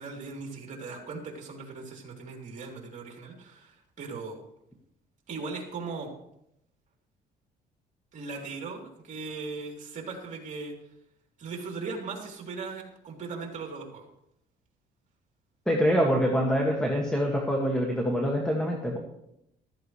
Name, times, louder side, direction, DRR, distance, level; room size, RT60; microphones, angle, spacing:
voice 1, 0.0-4.4 5.3-6.1 8.1-10.8 11.4-14.1, right 4 dB, 45° right, 1 dB, 3.3 m, -38 dB
voice 2, 15.7-19.0, equal, 5° left, 0 dB, 1.9 m, -25 dB
14.5 x 13.5 x 3.2 m, 0.79 s
cardioid pair, 110°, 17 cm